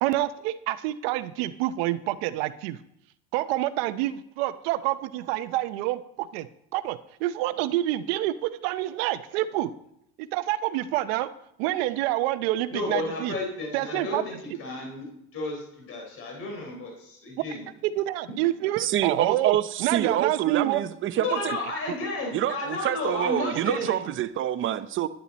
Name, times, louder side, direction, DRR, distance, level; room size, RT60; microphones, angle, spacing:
voice 1, 0.0-2.8 3.3-6.5 6.7-9.7 10.2-11.3 11.6-13.3 13.7-14.2 17.8-20.8 21.5-21.6 23.8-23.9, right 15 dB, 90° right, 0.8 m, -27 dB
voice 2, 12.7-17.7 21.2-24.0, left 2 dB, 45° left, 3.9 m, -32 dB
voice 3, 18.8-21.6 22.3-25.1, right 11 dB, 40° right, 0.7 m, -26 dB
11.5 x 11.0 x 4.2 m
cardioid pair, 125°, 30 cm